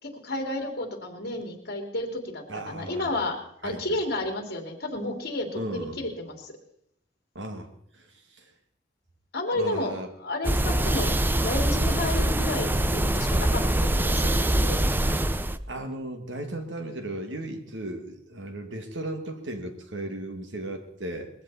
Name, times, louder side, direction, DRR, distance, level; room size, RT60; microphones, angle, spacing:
voice 1, 0.0-6.5 9.3-14.8 16.3-16.4, left 2 dB, 55° left, 4 dB, 2.9 m, -32 dB
voice 2, 2.5-3.1 3.6-4.0 5.6-6.0 7.3-7.7 7.9-8.1 8.3-8.4 9.5-10.1 15.7-21.3, right 1 dB, 75° right, 5 dB, 2.2 m, -35 dB
sound 1, 10.4-15.6, right 1 dB, 10° right, 0.5 m, -24 dB
21.0 x 15.0 x 4.2 m, 0.72 s
head